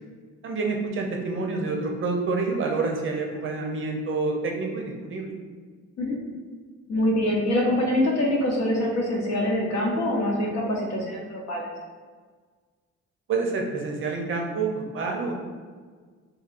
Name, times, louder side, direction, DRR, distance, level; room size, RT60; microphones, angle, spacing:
voice 1, 0.4-5.3 13.3-15.3, right 3 dB, 45° right, 1 dB, 0.6 m, -28 dB
voice 2, 6.9-11.7, left 1 dB, 60° left, -2 dB, 0.8 m, -24 dB
2.9 x 2.8 x 2.4 m, 1.5 s
cardioid pair, 90°, 30 cm